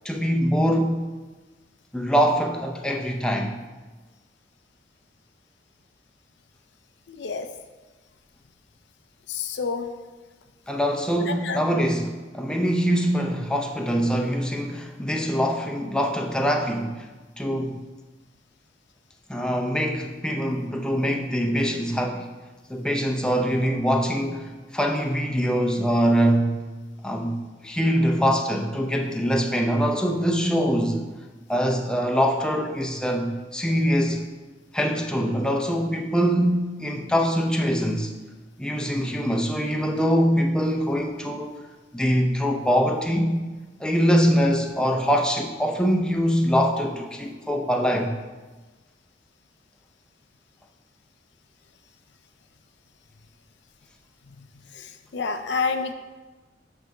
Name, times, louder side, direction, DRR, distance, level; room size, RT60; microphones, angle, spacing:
voice 1, 0.0-1.1 1.9-3.5 10.7-17.1 17.4-17.8 19.3-22.3 22.7-26.6 27.0-31.0 31.5-34.3 34.7-38.1 38.6-41.5 41.9-43.4 43.8-48.1, equal, 5° left, 1 dB, 0.6 m, -23 dB
voice 2, 7.1-7.5 9.3-9.9 11.2-11.6 54.7-55.9, left 5 dB, 75° left, 8 dB, 0.5 m, -28 dB
8.0 x 3.4 x 6.4 m, 1.2 s
head